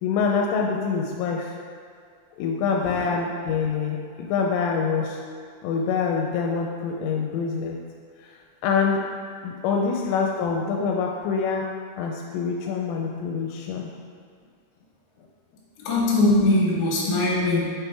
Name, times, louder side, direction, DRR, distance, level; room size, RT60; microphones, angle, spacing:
voice 1, 0.0-1.5 2.4-5.2 5.6-7.8 8.6-9.0 9.4-11.6 12.0-13.9, left 5 dB, 90° left, 0 dB, 3.1 m, -25 dB
voice 2, 15.9-17.6, left 2 dB, 70° left, -4 dB, 3.5 m, -21 dB
7.1 x 6.0 x 3.4 m, 2.1 s
omnidirectional pair, 5.5 m